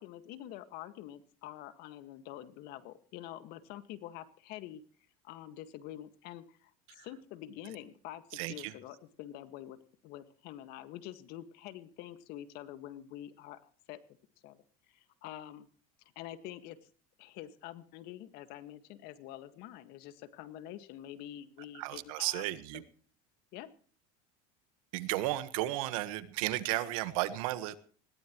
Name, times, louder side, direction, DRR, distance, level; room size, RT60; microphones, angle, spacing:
voice 1, 0.0-4.8 5.2-9.8 10.0-14.0 14.4-15.7 16.2-16.9 17.2-22.4 22.7-22.8 23.5-23.7, left 12 dB, 60° left, 11 dB, 1.8 m, -47 dB
voice 2, 8.3-8.7 21.7-22.8 24.9-27.7, right 16 dB, 80° right, 13 dB, 1.5 m, -34 dB
20.5 x 18.0 x 3.1 m, 0.43 s
supercardioid pair, 125°, 18 cm